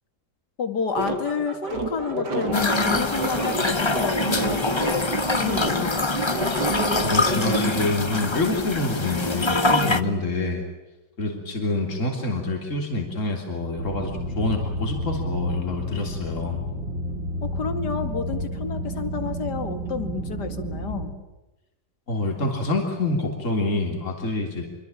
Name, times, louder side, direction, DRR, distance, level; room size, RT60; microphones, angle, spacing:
voice 1, 0.6-6.1 17.4-21.1, left 5 dB, 75° left, 9 dB, 2.8 m, -30 dB
sound 1, 0.9-7.7, right 2 dB, 85° right, 4.2 m, -28 dB
sound 2, 2.5-10.0, left 3 dB, 20° left, 0.9 m, -24 dB
voice 2, 7.0-10.7 11.2-16.6 22.1-24.7, left 2 dB, 45° left, 2 dB, 3.8 m, -27 dB
sound 3, 13.8-21.1, equal, 50° right, 5.2 m, -30 dB
27.0 x 24.5 x 9.0 m, 1.0 s
omnidirectional pair, 1.8 m